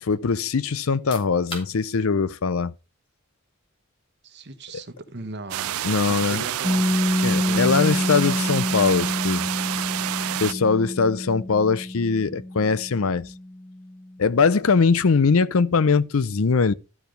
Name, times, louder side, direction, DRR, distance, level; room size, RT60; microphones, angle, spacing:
voice 1, 0.0-2.7 5.8-6.4 7.2-9.4 10.4-13.2 14.2-16.7, left 5 dB, 70° left, 0.6 m, -21 dB
sound 1, 0.9-13.5, left 1 dB, 25° left, 3.2 m, -50 dB
voice 2, 4.2-5.7 6.1-6.9 7.4-7.8, right 2 dB, 50° right, 1.1 m, -38 dB
sound 2, 5.5-10.5, right 12 dB, 80° right, 0.4 m, -28 dB
Piano, 6.6-13.9, left 1 dB, 10° left, 1.0 m, -27 dB
12.0 x 4.7 x 5.2 m
head